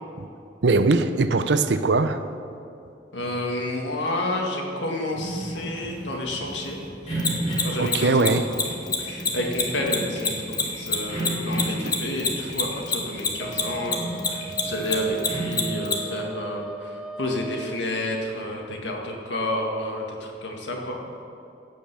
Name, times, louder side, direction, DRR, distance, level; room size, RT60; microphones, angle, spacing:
voice 1, 0.6-2.2 7.8-8.5 11.8-12.0 12.4-12.5, right 3 dB, 70° right, 11 dB, 0.6 m, -21 dB
voice 2, 3.1-6.8 7.6-8.3 9.0-21.0, left 1 dB, 80° left, 1 dB, 1.9 m, -30 dB
sound 1, 5.1-15.7, right 1 dB, 40° left, 3.0 m, -34 dB
Mechanisms, 7.2-13.9 14.2-15.9, left 5 dB, 25° left, 1.0 m, -23 dB
Wind instrument woodwind instrument, 13.4-17.8, right 5 dB, 5° right, 0.4 m, -37 dB
16.0 x 5.4 x 6.8 m, 2.6 s
head